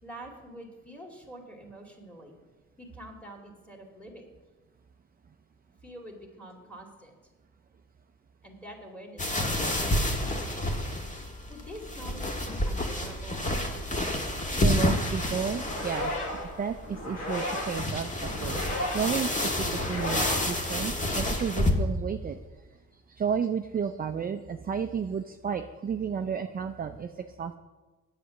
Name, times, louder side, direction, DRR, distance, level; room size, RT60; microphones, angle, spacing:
voice 1, 0.0-2.4 2.8-4.3 5.7-7.2 8.4-10.9 11.5-13.5, equal, 5° left, 2 dB, 2.5 m, -46 dB
sound 1, 9.2-21.7, left 1 dB, 25° left, 1.5 m, -29 dB
voice 2, 14.5-16.1 16.6-22.4 23.1-27.5, right 7 dB, 30° right, 7 dB, 0.5 m, -32 dB
sound 2, 15.5-21.3, left 1 dB, 65° left, 3.9 m, -35 dB
8.3 x 7.6 x 7.1 m, 1.2 s
cardioid pair, 90°, 30 cm